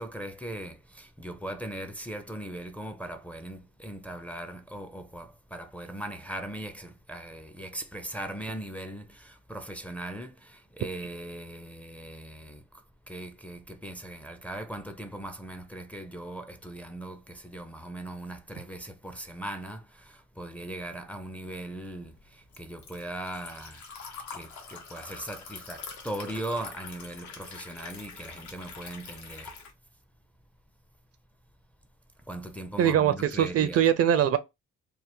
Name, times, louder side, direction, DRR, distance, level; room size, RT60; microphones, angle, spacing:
voice 1, 0.0-12.6 13.1-29.6 32.3-33.8, right 1 dB, 5° left, 0.5 m, -39 dB
Liquid, 21.4-29.7, left 5 dB, 70° left, 1.1 m, -45 dB
voice 2, 32.8-34.4, right 10 dB, 50° right, 0.5 m, -22 dB
3.4 x 2.1 x 2.9 m
cardioid pair, 90°, 30 cm